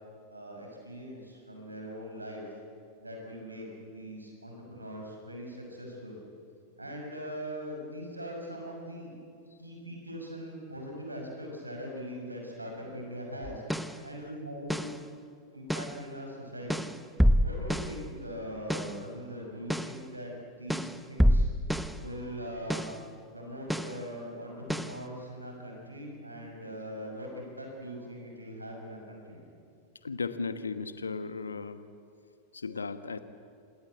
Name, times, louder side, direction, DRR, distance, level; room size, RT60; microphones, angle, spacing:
voice 1, 0.3-2.4 3.0-6.2 6.8-9.1 9.6-13.6 14.0-15.0 15.5-21.5 22.0-22.9 23.3-29.4, equal, 85° right, 1 dB, 6.3 m, -41 dB
sound 1, 13.4-14.0 14.7-15.0 15.7-16.0 16.7-18.0 18.7-19.0 19.7-20.0 20.7-22.0 22.7-23.0 23.7-24.0 24.7-25.0, equal, ahead, 0.9 m, -27 dB
voice 2, 30.0-31.8 32.5-33.2, left 4 dB, 75° left, 12 dB, 1.2 m, -35 dB
27.0 x 20.0 x 8.3 m, 2.4 s
figure-of-eight pair, 90°, 0 cm